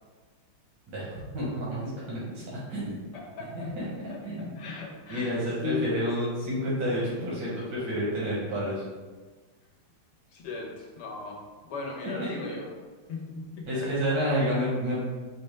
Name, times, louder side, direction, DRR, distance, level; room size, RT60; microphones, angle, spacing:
voice 1, 0.9-2.4 2.7-3.0 3.5-4.5 5.1-8.8 12.2-12.5 13.7-15.0, equal, 80° right, -8 dB, 1.7 m, -30 dB
voice 2, 3.1-3.7 4.1-5.9 10.3-12.7 13.1-13.9, left 3 dB, 75° left, -1 dB, 1.4 m, -37 dB
5.1 x 2.2 x 3.2 m, 1.4 s
omnidirectional pair, 1.8 m